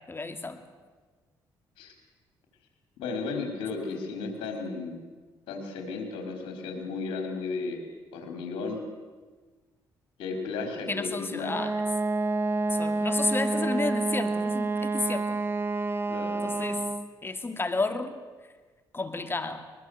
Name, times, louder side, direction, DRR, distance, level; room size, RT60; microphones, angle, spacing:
voice 1, 0.1-0.6 10.9-11.8 12.7-15.4 16.4-16.8 17.2-18.2 18.9-19.7, left 3 dB, 25° left, 9 dB, 2.6 m, -31 dB
voice 2, 3.0-5.0 5.5-7.8 8.1-8.8 10.2-11.5 13.5-13.6 16.1-16.9, left 4 dB, 90° left, 4 dB, 4.5 m, -34 dB
Wind instrument woodwind instrument, 11.4-17.1, right 3 dB, 25° right, 1.7 m, -28 dB
22.0 x 21.5 x 8.0 m, 1.4 s
cardioid pair, 75°, 9 cm